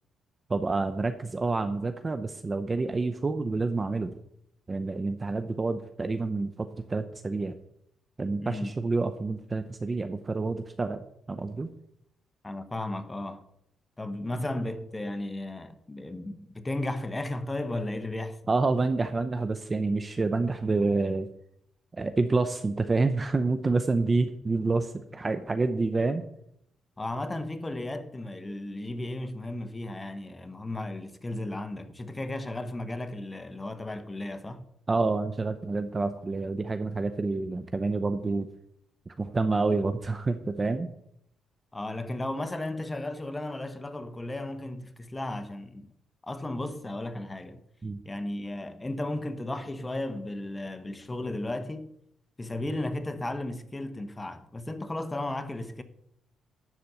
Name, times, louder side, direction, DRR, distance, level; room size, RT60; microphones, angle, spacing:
voice 1, 0.5-4.2 4.7-7.5 8.2-11.7 18.5-21.3 21.9-26.2 34.9-38.5 39.1-40.9 47.8-48.0, right 3 dB, 25° right, 0.7 m, -28 dB
voice 2, 8.4-8.7 12.4-13.5 14.0-18.4 27.0-34.7 41.7-45.9 46.2-47.6 48.0-51.9 52.4-55.8, left 1 dB, 15° left, 1.1 m, -34 dB
12.0 x 4.2 x 8.0 m
cardioid pair, 90°, 0 cm